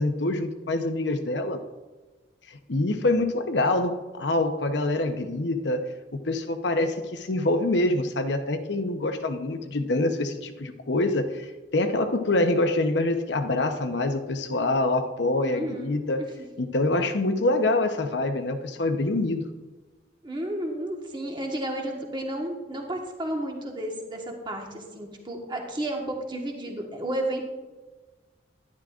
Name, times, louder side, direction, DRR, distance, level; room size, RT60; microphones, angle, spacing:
voice 1, 0.0-1.6 2.5-16.2 16.6-19.5, left 2 dB, 70° left, 7 dB, 0.9 m, -25 dB
voice 2, 15.5-16.3 20.2-27.4, right 1 dB, 25° right, 1 dB, 1.4 m, -32 dB
11.5 x 11.0 x 2.5 m, 1.2 s
head